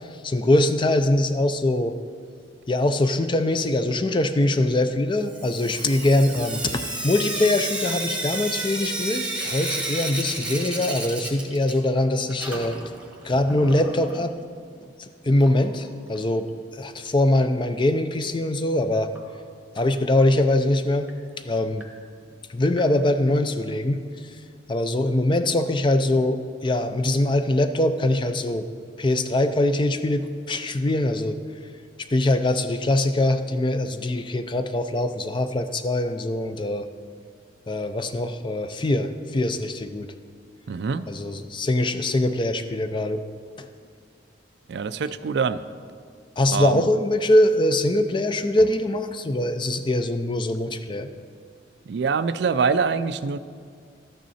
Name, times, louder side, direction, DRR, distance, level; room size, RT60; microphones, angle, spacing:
voice 1, 0.2-1.9 2.7-12.8 13.2-14.3 14.8-19.1 19.8-21.1 21.4-21.8 22.5-24.0 24.7-28.7 29.0-31.4 32.1-36.9 37.7-40.1 41.1-43.2 43.6-43.7 46.4-51.1, left 1 dB, 25° left, 9 dB, 0.5 m, -23 dB
Sink (filling or washing) / Drip, 5.3-12.0 12.3-14.2 15.4-15.5 15.8-15.9 16.2-16.3 19.2-19.3 19.8-19.9 20.4-20.5 21.1-21.2 21.8-21.9 22.8-22.9, right 2 dB, 5° right, 1.1 m, -32 dB
voice 2, 40.7-41.1 44.7-45.6 46.5-46.9 51.9-53.4, right 5 dB, 65° right, 13 dB, 0.4 m, -24 dB
12.5 x 9.2 x 4.2 m, 2.1 s
head